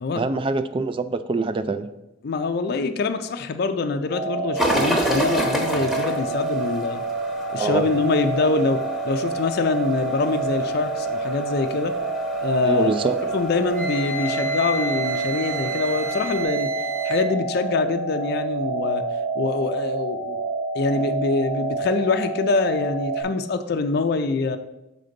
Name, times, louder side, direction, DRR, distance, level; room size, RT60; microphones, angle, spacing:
voice 1, 0.2-1.9 7.6-7.9 12.6-13.2, right 3 dB, 25° right, 12 dB, 0.3 m, -24 dB
voice 2, 2.2-7.0 7.5-11.9 12.4-12.9 13.3-16.7 17.0-19.0 19.4-20.4 20.7-24.6, left 4 dB, 55° left, 7 dB, 0.4 m, -24 dB
sound 1, 4.1-23.2, right 3 dB, 65° right, 2.5 m, -28 dB
sound 2, 4.6-16.4, equal, ahead, 0.9 m, -31 dB
Wind instrument woodwind instrument, 13.7-17.2, right 3 dB, 90° right, 1.4 m, -31 dB
6.6 x 3.9 x 5.1 m, 0.94 s
head